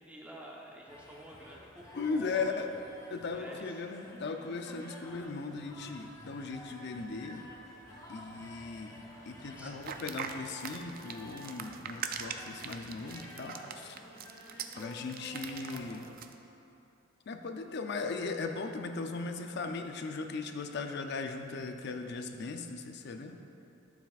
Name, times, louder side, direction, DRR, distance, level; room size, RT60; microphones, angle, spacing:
voice 1, 0.0-3.8 9.5-9.8, right 1 dB, 10° right, -3 dB, 1.0 m, -50 dB
sound 1, 0.9-16.0, left 1 dB, 20° left, 0.9 m, -51 dB
voice 2, 1.9-2.7 3.1-7.4 8.1-14.0 14.8-16.1 17.3-23.4, left 4 dB, 60° left, 6 dB, 0.5 m, -38 dB
sound 2, 9.8-16.3, right 7 dB, 50° right, 0.4 m, -42 dB
12.5 x 7.1 x 2.4 m, 2.8 s
head